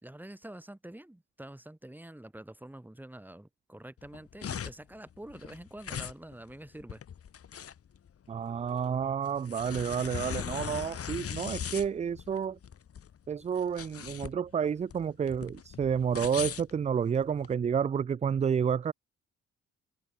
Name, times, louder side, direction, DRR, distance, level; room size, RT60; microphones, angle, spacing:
voice 1, 0.0-7.0, right 1 dB, 5° right, 2.0 m, -47 dB
sound 1, 4.0-17.5, left 8 dB, 50° left, 2.0 m, -40 dB
voice 2, 8.3-12.6 13.3-18.9, right 7 dB, 25° right, 0.4 m, -30 dB
cardioid pair, 90°, 30 cm